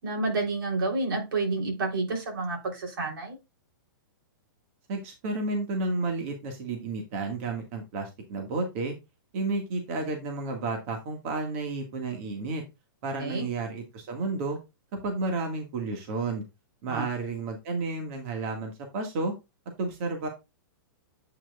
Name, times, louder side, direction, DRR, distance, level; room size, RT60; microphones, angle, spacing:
voice 1, 0.0-3.4 13.2-13.5 16.9-17.1, right 3 dB, 80° right, 3.5 m, -29 dB
voice 2, 4.9-8.9 9.3-12.6 13.0-14.6 15.0-16.4 16.8-19.3 19.8-20.3, right 3 dB, 40° right, 1.8 m, -31 dB
8.6 x 6.1 x 2.4 m
hypercardioid pair, 165°, 12 cm